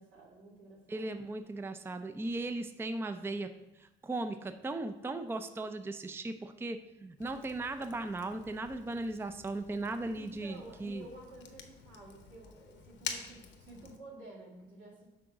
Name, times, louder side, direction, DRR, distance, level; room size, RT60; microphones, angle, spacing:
voice 1, 0.0-1.2 10.1-15.1, right 2 dB, 85° right, -2 dB, 2.1 m, -52 dB
voice 2, 0.9-3.5 3.8-11.0, right 2 dB, 10° right, 9 dB, 0.4 m, -37 dB
Fire, 7.2-14.0, left 6 dB, 70° left, 0.9 m, -48 dB
6.1 x 3.9 x 5.8 m, 0.99 s
cardioid pair, 90°, 20 cm